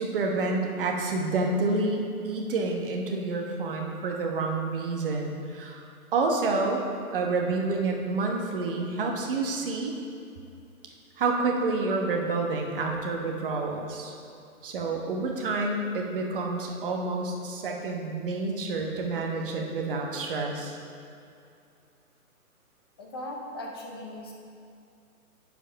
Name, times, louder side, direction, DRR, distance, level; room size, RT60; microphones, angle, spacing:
voice 1, 0.0-5.8 6.1-6.8 7.1-9.9 11.2-14.1 14.6-20.8, right 3 dB, 35° right, 1 dB, 1.2 m, -28 dB
voice 2, 23.0-24.3, left 1 dB, 15° left, -1 dB, 0.6 m, -38 dB
10.0 x 5.0 x 5.7 m, 2.5 s
hypercardioid pair, 150°, 45 cm